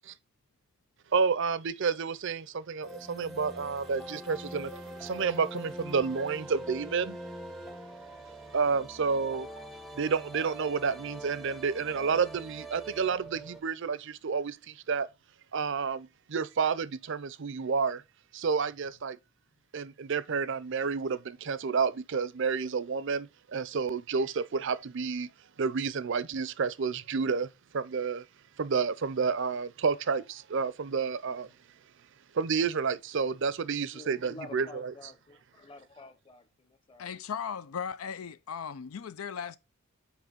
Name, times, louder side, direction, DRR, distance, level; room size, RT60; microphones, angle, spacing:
voice 1, 1.1-7.2 8.5-9.5 9.9-15.1 15.5-18.0 18.3-19.2 19.7-25.3 25.6-28.2 28.6-31.5 32.3-34.9, right 5 dB, 60° right, 0.5 m, -30 dB
sound 1, 2.8-13.6, right 1 dB, ahead, 0.5 m, -43 dB
voice 2, 33.9-37.2, left 3 dB, 25° left, 0.9 m, -49 dB
voice 3, 37.0-39.6, left 7 dB, 90° left, 0.5 m, -37 dB
6.1 x 4.7 x 5.1 m
head